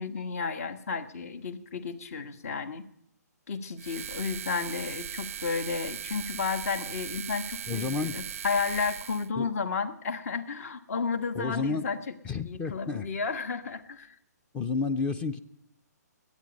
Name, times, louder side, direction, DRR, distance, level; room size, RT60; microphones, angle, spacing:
voice 1, 0.0-2.9 3.5-12.0 12.4-14.1, left 5 dB, 55° left, 12 dB, 1.4 m, -32 dB
sound 1, 3.8-9.3, right 9 dB, 50° right, 0.4 m, -39 dB
voice 2, 7.7-8.1 9.4-9.5 11.3-11.9 12.2-13.1 14.5-15.4, left 4 dB, 10° left, 13 dB, 0.5 m, -30 dB
21.0 x 8.8 x 5.2 m, 0.76 s
hypercardioid pair, 150°, 9 cm